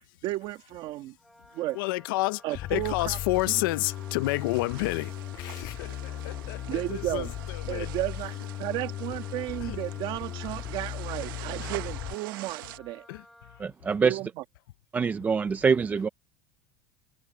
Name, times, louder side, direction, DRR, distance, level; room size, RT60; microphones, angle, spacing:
voice 1, 0.2-1.1 1.5-1.8 2.4-3.2 3.5-3.6 6.7-7.3 7.7-13.1 14.0-14.3, right 16 dB, 45° right, 1.7 m, -33 dB
Wind instrument woodwind instrument, 1.2-13.7, equal, ahead, 2.3 m, -55 dB
voice 2, 1.7-7.9 9.6-9.8 11.6-11.7 13.1-13.2, left 20 dB, 80° left, 0.7 m, -30 dB
Bass guitar, 2.5-12.1, left 13 dB, 40° left, 3.7 m, -37 dB
sound 1, 2.8-12.8, right 18 dB, 85° right, 1.1 m, -46 dB
voice 3, 13.6-14.2 14.9-16.1, right 5 dB, 15° right, 0.4 m, -25 dB
supercardioid pair, 155°, 11 cm